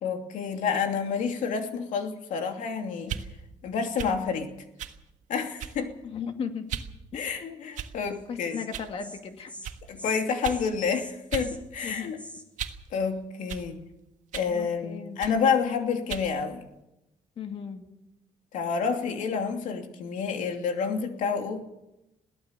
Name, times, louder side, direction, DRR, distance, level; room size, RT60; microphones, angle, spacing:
voice 1, 0.0-3.2 3.6-4.5 5.3-5.9 7.1-8.6 9.9-12.2 12.9-13.8 14.3-16.6 18.5-21.6, left 6 dB, 90° left, 5 dB, 2.8 m, -29 dB
sound 1, 3.0-3.3 4.0-4.2 4.8-5.0 5.6-5.9 6.7-6.9 7.7-8.1 8.7-8.9 9.6-9.8 10.4-10.6 11.3-11.5 11.9-12.9 13.5-13.7 14.3-14.5 15.2-15.4 16.1-16.3, right 9 dB, 75° right, 1.6 m, -36 dB
voice 2, 6.0-6.7 7.1-7.3 8.3-9.5 11.8-12.1 14.5-15.2 17.4-17.8, left 6 dB, 50° left, 6 dB, 2.3 m, -36 dB
Insect, 8.1-8.2 8.5-8.7 9.0-9.2 9.5-9.7 9.9-10.2 10.4-10.7 10.9-12.4, equal, 10° left, 2.3 m, -44 dB
22.0 x 17.0 x 7.0 m, 0.90 s
cardioid pair, 170°, 13 cm